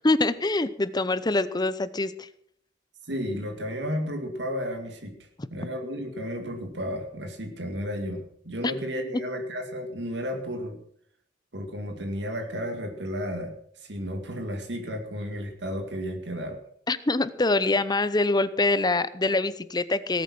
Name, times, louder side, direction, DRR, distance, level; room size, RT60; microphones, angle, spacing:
voice 1, 0.0-2.3 8.6-8.7 16.9-20.2, left 2 dB, 25° left, 15 dB, 0.7 m, -24 dB
voice 2, 3.0-5.1 5.5-10.8 11.5-16.6, equal, 70° right, 4 dB, 2.2 m, -33 dB
18.5 x 8.5 x 6.2 m, 0.66 s
head